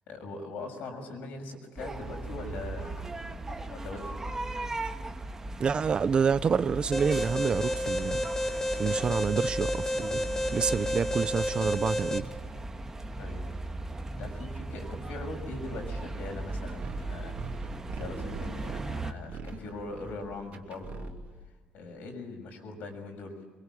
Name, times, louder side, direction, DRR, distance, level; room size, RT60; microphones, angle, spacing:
voice 1, 0.1-3.1 3.7-4.2 13.2-13.6 14.1-21.1 21.7-23.4, left 3 dB, 85° left, 6.7 m, -41 dB
sound 1, 1.8-19.1, right 2 dB, 15° right, 1.7 m, -38 dB
voice 2, 5.6-8.2 8.8-10.2 10.5-12.3, right 6 dB, 35° right, 0.7 m, -28 dB
Alarm, 6.9-12.2, left 1 dB, 15° left, 1.6 m, -31 dB
sound 2, 15.7-21.5, right 3 dB, 60° right, 2.8 m, -41 dB
24.5 x 23.5 x 8.5 m
cardioid pair, 150°, 3 cm